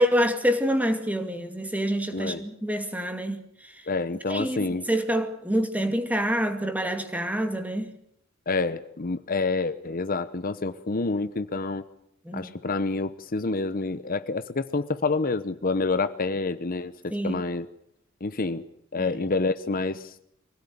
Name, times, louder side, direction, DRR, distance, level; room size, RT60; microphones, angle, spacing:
voice 1, 0.0-3.8 4.3-7.9 12.2-12.5 17.1-17.5 19.0-19.2, equal, 10° right, 2.3 m, -27 dB
voice 2, 3.9-4.8 8.5-11.8 12.3-17.7 18.2-18.6 18.9-20.1, left 3 dB, 45° left, 0.9 m, -28 dB
24.5 x 17.5 x 9.5 m
head